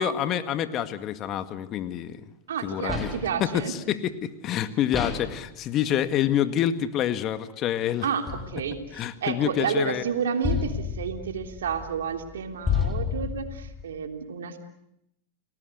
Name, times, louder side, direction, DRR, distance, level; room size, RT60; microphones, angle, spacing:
voice 1, 0.0-2.2 2.6-3.1 3.4-8.1 8.9-10.0, left 10 dB, 40° left, 10 dB, 1.9 m, -27 dB
voice 2, 2.5-3.7 8.0-8.2 8.5-14.6, right 7 dB, 80° right, 5 dB, 3.4 m, -30 dB
sound 1, 2.9-3.5 4.9-5.5 8.3-8.9 10.4-13.8, left 6 dB, 20° left, 4.4 m, -31 dB
30.0 x 19.5 x 8.1 m, 0.80 s
hypercardioid pair, 105°, 0 cm